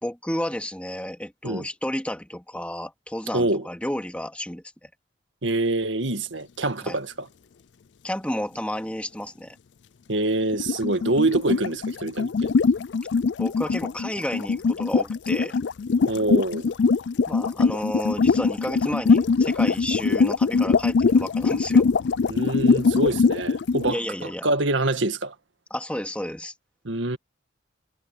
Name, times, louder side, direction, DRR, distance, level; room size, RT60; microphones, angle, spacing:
voice 1, 0.0-4.9 6.8-7.0 8.0-9.6 13.4-15.6 17.3-21.9 23.9-24.5 25.7-26.5, left 1 dB, 5° left, 2.6 m, -31 dB
voice 2, 3.3-3.7 5.4-7.3 10.1-12.5 16.1-16.7 22.3-25.3 26.8-27.2, right 2 dB, 80° right, 1.8 m, -25 dB
sound 1, 10.5-23.9, left 4 dB, 65° left, 0.4 m, -22 dB
head